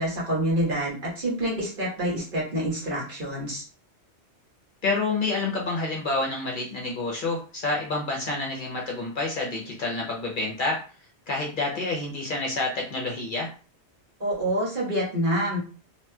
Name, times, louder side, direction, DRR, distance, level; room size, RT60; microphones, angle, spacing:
voice 1, 0.0-3.6 14.2-15.6, right 1 dB, 50° right, -5 dB, 1.3 m, -27 dB
voice 2, 4.8-10.8 11.3-13.5, left 3 dB, 50° left, -1 dB, 0.8 m, -28 dB
2.9 x 2.9 x 2.2 m, 0.37 s
omnidirectional pair, 1.2 m